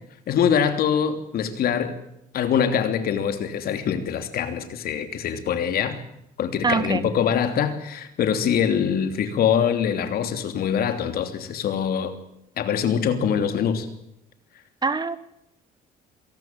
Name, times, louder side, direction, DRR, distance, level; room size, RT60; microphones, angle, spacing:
voice 1, 0.3-2.0 2.3-6.0 6.4-12.2 12.6-13.9, left 8 dB, 65° left, 8 dB, 3.1 m, -24 dB
voice 2, 6.6-7.1 14.8-15.2, right 4 dB, 25° right, 15 dB, 1.3 m, -24 dB
27.0 x 18.5 x 7.7 m, 0.79 s
cardioid pair, 110°, 17 cm